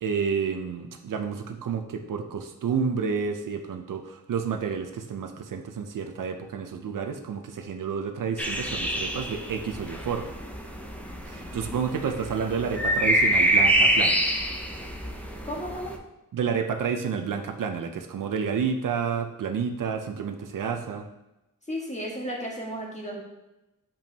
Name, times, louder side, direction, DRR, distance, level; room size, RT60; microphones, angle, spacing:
voice 1, 0.0-10.3 11.3-14.2 16.3-21.1, right 6 dB, 70° right, 6 dB, 0.6 m, -30 dB
sound 1, 8.4-16.0, right 1 dB, 5° left, 0.6 m, -26 dB
voice 2, 11.0-11.8 15.4-15.9 21.7-23.2, equal, 20° left, -3 dB, 1.6 m, -35 dB
7.1 x 5.2 x 2.8 m, 0.97 s
wide cardioid pair, 115°, 33 cm